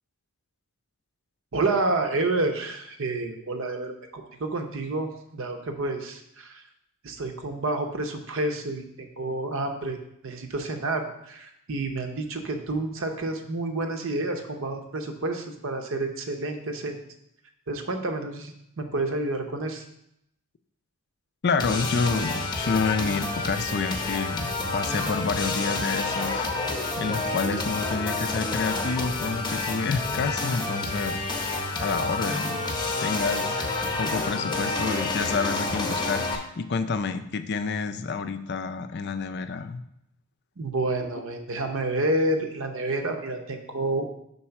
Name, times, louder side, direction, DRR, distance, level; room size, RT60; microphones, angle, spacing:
voice 1, 1.5-6.6 7.0-10.0 10.2-17.0 17.7-19.8 40.6-44.1, right 2 dB, 60° right, 5 dB, 0.8 m, -29 dB
voice 2, 21.4-26.4 27.0-31.2 31.8-39.8, left 4 dB, 50° left, 10 dB, 0.4 m, -29 dB
sound 1, 21.6-36.4, left 3 dB, 20° left, 0.7 m, -29 dB
5.4 x 4.2 x 5.8 m, 0.78 s
head